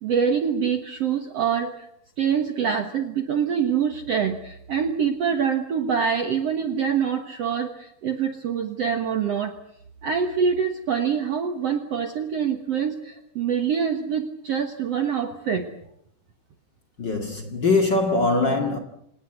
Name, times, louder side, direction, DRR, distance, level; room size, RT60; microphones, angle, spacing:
voice 1, 0.0-1.9 2.2-9.6 10.0-15.7, right 7 dB, 60° right, 1.8 m, -25 dB
voice 2, 17.0-18.8, left 3 dB, 35° left, 2.2 m, -22 dB
26.5 x 19.0 x 8.1 m
omnidirectional pair, 4.4 m